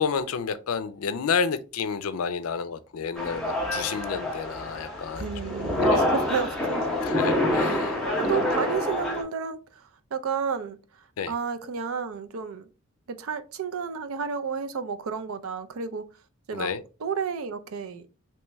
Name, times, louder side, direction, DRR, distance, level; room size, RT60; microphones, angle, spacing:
voice 1, 0.0-5.3 5.8-6.1 7.0-8.0 11.2-11.3 16.5-16.8, left 6 dB, 80° left, 0.4 m, -30 dB
sound 1, 3.2-9.2, left 1 dB, ahead, 0.9 m, -27 dB
voice 2, 5.2-6.9 8.2-10.8 11.3-12.7 13.1-16.0 16.5-16.7 17.0-18.1, right 6 dB, 75° right, 0.4 m, -31 dB
3.1 x 3.0 x 3.4 m
head